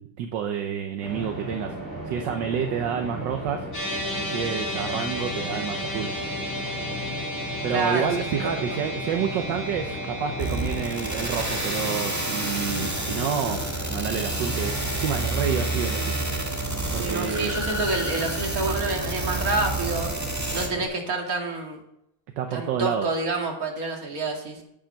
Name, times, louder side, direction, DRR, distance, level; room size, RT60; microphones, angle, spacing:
voice 1, 0.0-1.7 2.1-3.7 4.2-6.3 7.6-16.2 16.9-17.5 22.4-23.1, right 8 dB, 70° right, 5 dB, 1.5 m, -29 dB
sound 1, 1.0-20.9, equal, 25° left, 4.0 m, -35 dB
sound 2, 3.7-16.2, left 1 dB, 45° left, 6.0 m, -35 dB
voice 2, 7.7-8.1 8.4-8.8 17.0-20.1 20.5-21.8 22.5-24.6, right 3 dB, 45° right, 1 dB, 2.6 m, -28 dB
sound 3, 10.4-20.7, right 2 dB, 10° right, 1.3 m, -29 dB
8.9 x 8.8 x 5.7 m, 0.78 s
omnidirectional pair, 2.2 m